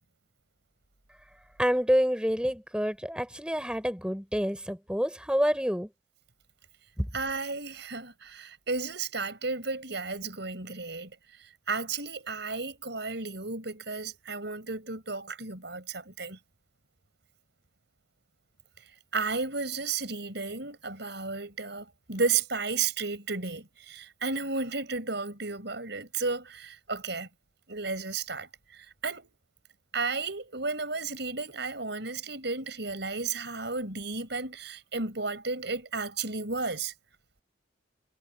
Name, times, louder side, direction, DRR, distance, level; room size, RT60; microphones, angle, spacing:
voice 1, 1.6-5.9 7.0-7.1, equal, 5° right, 5.7 m, -27 dB
voice 2, 7.1-11.1 11.7-16.4 19.1-27.3 27.7-29.3 29.9-36.9, right 4 dB, 60° right, 5.9 m, -33 dB
head